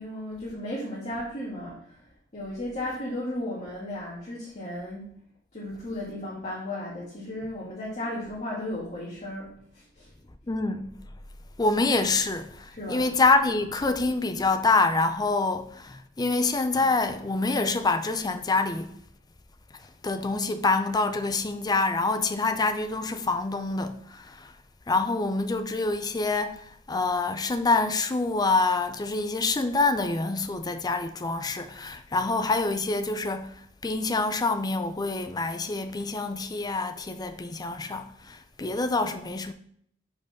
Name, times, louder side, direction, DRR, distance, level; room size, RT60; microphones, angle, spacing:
voice 1, 0.0-2.0 2.3-5.1 5.5-10.1 12.7-13.1, left 1 dB, 35° left, 1.9 m, -35 dB
voice 2, 10.5-11.0 11.6-18.9 20.0-24.0 24.9-26.6 26.9-33.5 33.8-39.5, left 3 dB, 20° left, 0.5 m, -26 dB
5.1 x 4.6 x 5.9 m
head